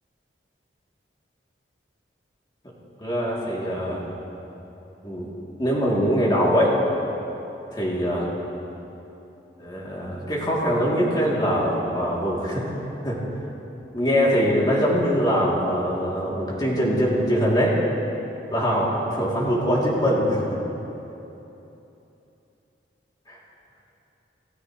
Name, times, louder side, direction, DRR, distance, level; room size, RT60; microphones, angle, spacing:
voice 1, 3.0-4.0 5.0-5.3 5.6-6.7 7.7-8.3 9.6-12.7 13.0-13.2 13.9-17.8 18.5-20.6 23.3-23.4, equal, 20° left, -5 dB, 2.9 m, -23 dB
28.5 x 13.0 x 3.2 m, 3.0 s
head